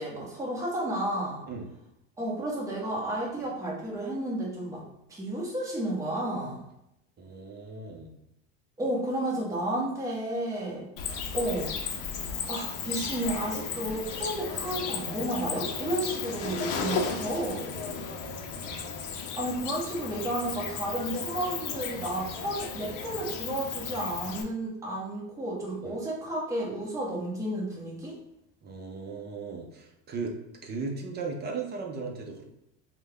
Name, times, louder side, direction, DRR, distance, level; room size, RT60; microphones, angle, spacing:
voice 1, 0.0-1.4 2.2-4.8 5.1-6.6 8.8-10.9 11.3-11.7 12.0-17.7 19.4-28.2, right 1 dB, 10° right, -5 dB, 1.0 m, -32 dB
voice 2, 7.2-8.1 17.8-18.1 25.8-26.0 28.6-30.4 30.6-32.4, right 4 dB, 30° right, 2 dB, 0.7 m, -37 dB
Cricket, 11.0-24.4, left 6 dB, 60° left, 0.6 m, -35 dB
3.2 x 2.2 x 3.5 m, 0.83 s
supercardioid pair, 120°, 35 cm